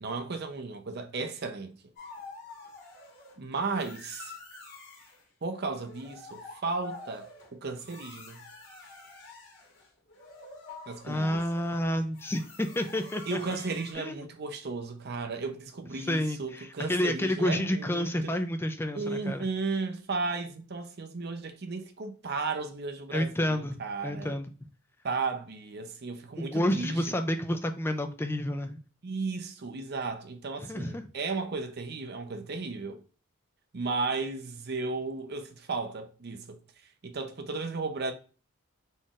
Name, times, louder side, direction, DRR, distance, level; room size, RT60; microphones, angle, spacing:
voice 1, 0.0-1.8 3.4-4.3 5.4-8.4 10.9-11.4 13.3-18.3 18.9-24.3 25.0-27.0 29.0-33.0 33.7-36.6 37.0-38.1, right 4 dB, 50° right, 0.6 m, -34 dB
sound 1, 2.0-3.4 3.8-5.2 5.7-13.9, left 3 dB, 50° left, 1.5 m, -48 dB
voice 2, 11.0-13.4 13.9-14.3 16.0-19.5 23.1-24.5 26.4-28.8 30.6-31.0, left 1 dB, 10° left, 0.3 m, -30 dB
4.0 x 3.7 x 2.4 m
head